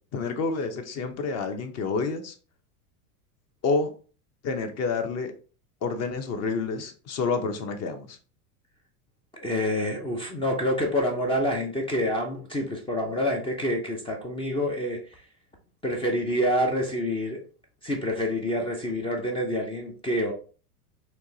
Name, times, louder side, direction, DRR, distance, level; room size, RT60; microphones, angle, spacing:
voice 1, 0.1-2.3 3.6-3.9 4.4-5.3 5.8-8.2, left 4 dB, 35° left, 0.8 m, -28 dB
voice 2, 9.3-15.2 15.8-17.4 17.8-20.3, equal, 10° left, 0.4 m, -27 dB
4.5 x 2.9 x 2.7 m
supercardioid pair, 115°, 46 cm